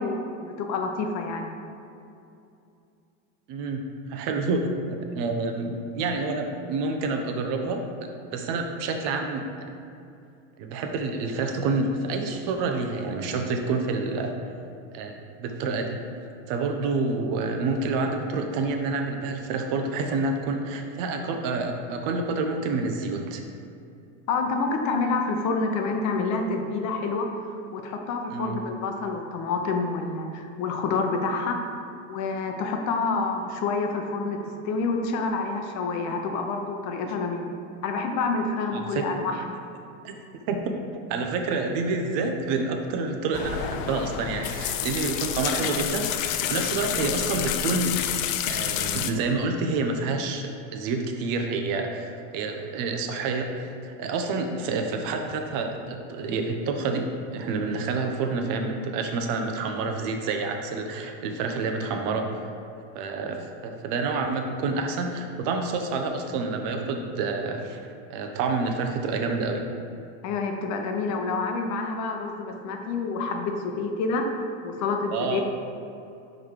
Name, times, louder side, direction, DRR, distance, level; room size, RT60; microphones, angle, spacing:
voice 1, 0.0-1.6 24.3-27.3 27.7-31.6 32.1-37.5 37.8-39.6 70.2-74.3 74.6-75.4, left 4 dB, 50° left, 3 dB, 0.8 m, -28 dB
voice 2, 3.5-7.8 8.3-9.4 10.6-14.4 14.9-15.1 15.4-16.0 16.5-23.4 28.3-28.6 38.7-39.0 40.0-40.2 40.5-40.8 41.1-48.0 48.5-62.5 62.9-67.8 68.1-69.6 75.1-75.4, right 3 dB, 60° right, 4 dB, 0.8 m, -28 dB
sound 1, 43.3-49.1, left 10 dB, 80° left, 0.6 m, -29 dB
5.2 x 3.9 x 4.8 m, 2.6 s
supercardioid pair, 110°, 39 cm